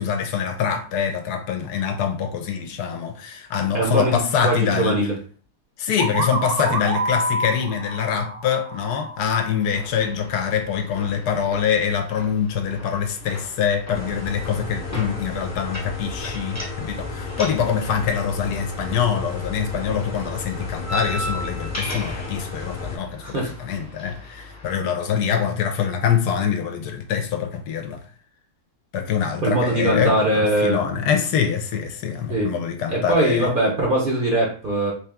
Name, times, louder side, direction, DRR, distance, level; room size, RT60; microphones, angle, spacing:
voice 1, 0.0-5.0 5.8-28.0 28.9-33.5, left 7 dB, 75° left, 1.2 m, -24 dB
voice 2, 3.7-5.1 23.2-23.5 29.4-30.8 32.3-32.5 32.9-34.9, right 1 dB, 45° right, 0.7 m, -21 dB
sound 1, 6.0-9.7, right 1 dB, 70° right, 1.3 m, -28 dB
sound 2, 9.7-24.7, equal, 15° left, 0.6 m, -38 dB
sound 3, 13.9-23.0, left 4 dB, 40° left, 0.9 m, -32 dB
3.5 x 2.8 x 3.4 m
omnidirectional pair, 1.7 m